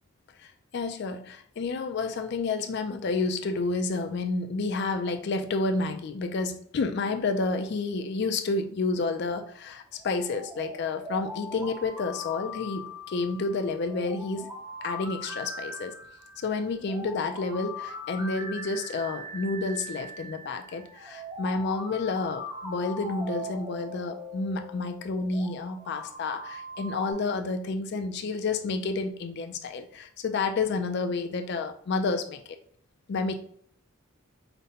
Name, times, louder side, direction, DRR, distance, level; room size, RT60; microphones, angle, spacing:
voice 1, 0.4-14.5 14.8-15.9 16.4-32.4 33.1-33.4, left 3 dB, 50° left, 7 dB, 0.4 m, -30 dB
sound 1, 10.0-27.1, left 1 dB, 15° right, 0.6 m, -41 dB
5.1 x 2.1 x 2.8 m, 0.63 s
head